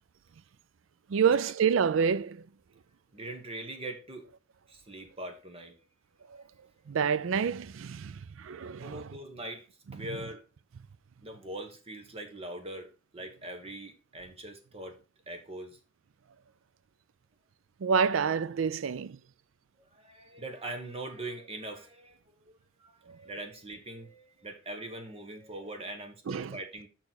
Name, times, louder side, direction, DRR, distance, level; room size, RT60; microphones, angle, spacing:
voice 1, 1.1-2.5 6.3-6.4 6.9-9.1 9.9-10.1 17.8-19.2 23.1-23.2 26.3-26.6, right 6 dB, 85° right, 0.4 m, -28 dB
voice 2, 3.1-4.3 4.7-5.7 8.8-10.4 11.2-12.9 13.1-15.0 15.3-15.8 19.8-22.9 23.2-26.9, right 1 dB, 30° right, 1.3 m, -42 dB
6.8 x 6.1 x 4.0 m
head